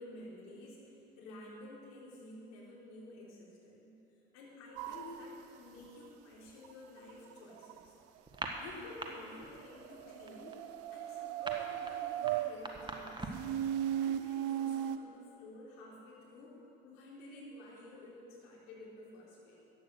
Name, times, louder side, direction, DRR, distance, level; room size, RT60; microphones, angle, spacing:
voice 1, 0.0-3.9 4.3-8.0 8.6-13.3 14.0-19.6, left 2 dB, 60° left, -5 dB, 4.0 m, -51 dB
sound 1, 4.8-5.4 6.6-6.7 7.0-7.8 8.5-8.7 9.5-12.5 13.3-15.0, right 11 dB, 60° right, 0.6 m, -37 dB
sound 2, 8.2-9.1 9.4-9.7 10.0-13.5, right 2 dB, 15° right, 1.7 m, -42 dB
15.0 x 10.0 x 6.5 m, 2.7 s
figure-of-eight pair, 60°, 29 cm